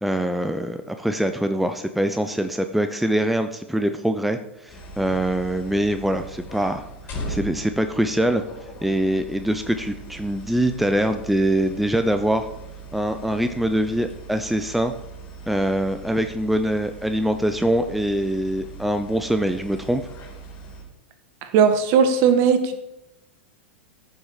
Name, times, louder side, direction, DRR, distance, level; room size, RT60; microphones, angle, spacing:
voice 1, 0.0-6.8 7.3-8.4 8.8-12.5 12.9-14.9 15.5-20.0, right 1 dB, ahead, 8 dB, 0.6 m, -23 dB
sound 1, 4.7-20.8, right 2 dB, 35° left, 4.4 m, -40 dB
voice 2, 21.4-22.9, right 6 dB, 45° right, 9 dB, 1.6 m, -18 dB
14.5 x 7.2 x 5.1 m, 0.90 s
figure-of-eight pair, 95°, 6 cm